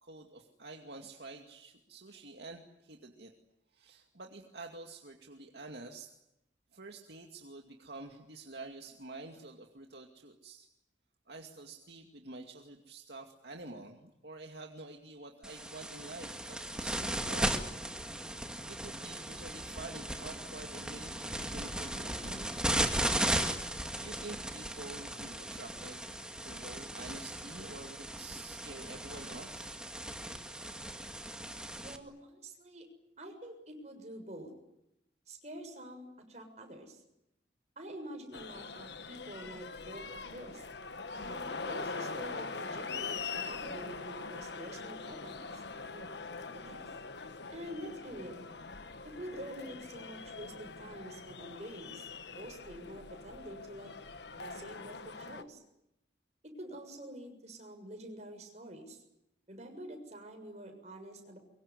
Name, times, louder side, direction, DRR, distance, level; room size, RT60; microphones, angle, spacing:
voice 1, 0.0-3.3 3.7-6.1 6.7-10.7 11.3-17.6 18.7-22.6 23.9-26.0 26.4-29.8, right 2 dB, 60° right, 2 dB, 2.4 m, -48 dB
sound 1, 15.4-32.0, right 1 dB, 5° right, 2.1 m, -37 dB
voice 2, 31.8-32.8 33.2-34.5 35.3-37.0 37.7-40.0 40.3-40.6 41.1-45.6 45.9-46.9 47.2-48.5 49.0-53.9 54.3-55.6 56.6-59.0 59.5-61.4, right 1 dB, 40° right, 4 dB, 7.0 m, -47 dB
sound 2, 38.3-55.4, left 4 dB, 65° left, 1.5 m, -43 dB
24.0 x 23.5 x 9.9 m, 0.85 s
head